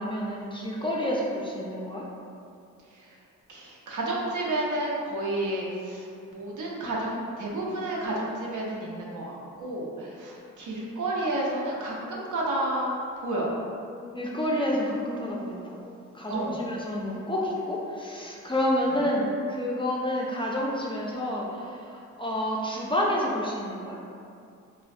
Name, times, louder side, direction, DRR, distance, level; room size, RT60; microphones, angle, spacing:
voice 1, 0.0-2.0 14.1-15.8 16.1-24.0, left 1 dB, 15° left, -4 dB, 0.3 m, -29 dB
voice 2, 3.5-13.5 16.3-16.6, right 1 dB, 65° right, -3 dB, 0.6 m, -31 dB
2.4 x 2.1 x 2.3 m, 2.4 s
supercardioid pair, 45°, 32 cm